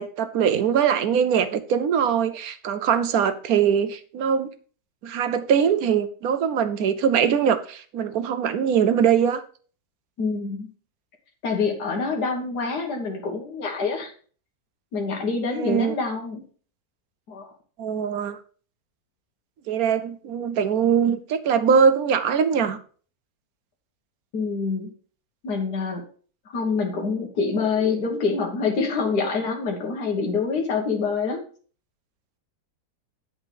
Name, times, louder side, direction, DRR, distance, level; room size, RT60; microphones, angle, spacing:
voice 1, 0.0-4.5 5.0-9.4 15.5-16.0 17.8-18.4 19.7-22.8, right 7 dB, 70° right, 1.1 m, -22 dB
voice 2, 10.2-10.7 11.4-14.1 14.9-16.4 17.3-17.5 24.3-24.9 25.4-26.0 26.5-31.4, left 4 dB, 80° left, 2.0 m, -26 dB
8.9 x 4.8 x 5.1 m
omnidirectional pair, 1.7 m